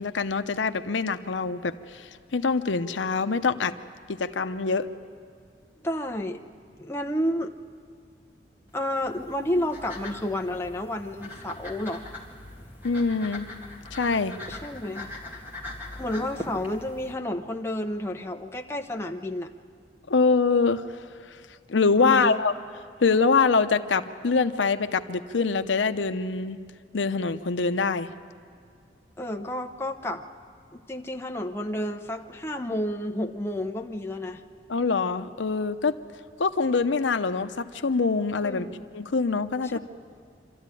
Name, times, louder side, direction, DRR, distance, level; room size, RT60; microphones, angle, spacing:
voice 1, 0.0-3.7 4.1-4.9 12.8-13.5 13.9-14.3 20.1-21.0 21.7-22.5 23.0-26.6 26.9-28.1 34.7-36.0 36.4-38.7 38.9-39.8, left 4 dB, 85° left, 10 dB, 0.7 m, -24 dB
voice 2, 5.8-6.4 6.8-7.5 8.7-12.1 14.5-15.1 16.0-19.5 22.0-22.4 29.2-30.2 30.7-34.4 38.4-38.9, left 1 dB, 15° left, 3 dB, 0.8 m, -30 dB
sound 1, 8.7-17.1, left 2 dB, 10° right, 2.2 m, -41 dB
26.0 x 13.5 x 9.1 m, 2.3 s
head